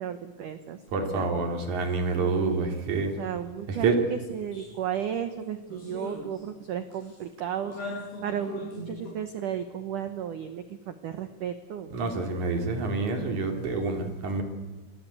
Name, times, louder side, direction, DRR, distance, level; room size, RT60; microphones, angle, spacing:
voice 1, 0.0-0.8 1.1-1.3 2.1-2.6 3.2-11.9, right 9 dB, 90° right, 10 dB, 1.8 m, -34 dB
voice 2, 0.9-3.1 3.7-4.0 11.9-14.4, right 4 dB, 45° right, 4 dB, 4.0 m, -27 dB
sound 1, 4.5-4.7 5.1-5.2 5.7-6.6 6.9-7.2 7.6-9.1, left 1 dB, 60° left, 9.1 m, -39 dB
27.5 x 19.5 x 8.6 m, 1.3 s
omnidirectional pair, 5.5 m